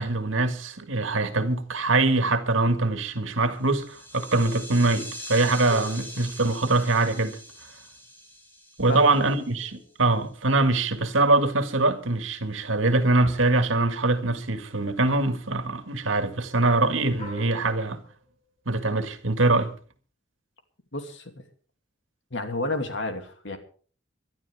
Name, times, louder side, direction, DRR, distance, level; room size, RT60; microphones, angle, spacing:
voice 1, 0.0-7.4 8.8-18.0 18.7-19.7, right 2 dB, 85° right, 1.9 m, -23 dB
sound 1, 3.6-9.7, equal, 10° left, 4.5 m, -42 dB
sound 2, 5.7-6.6 8.9-10.6 13.2-13.7 15.1-15.6 17.2-18.4, left 3 dB, 35° left, 7.3 m, -43 dB
voice 2, 20.9-21.4 22.3-23.6, left 2 dB, 70° left, 2.7 m, -31 dB
23.5 x 12.0 x 3.6 m
head